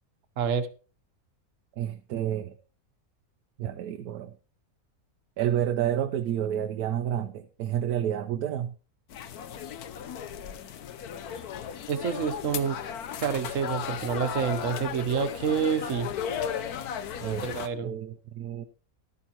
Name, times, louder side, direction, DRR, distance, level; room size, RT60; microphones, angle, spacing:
voice 1, 0.4-0.7 11.9-12.8 13.2-16.1 17.4-17.9, right 7 dB, 60° right, 10 dB, 1.3 m, -28 dB
voice 2, 1.8-2.5 3.6-4.3 5.4-8.7 17.2-17.5 17.8-18.6, right 10 dB, 90° right, 8 dB, 1.2 m, -29 dB
sound 1, 9.1-17.7, left 8 dB, 85° left, 1.3 m, -35 dB
14.0 x 12.0 x 2.9 m, 0.36 s
omnidirectional pair, 1.6 m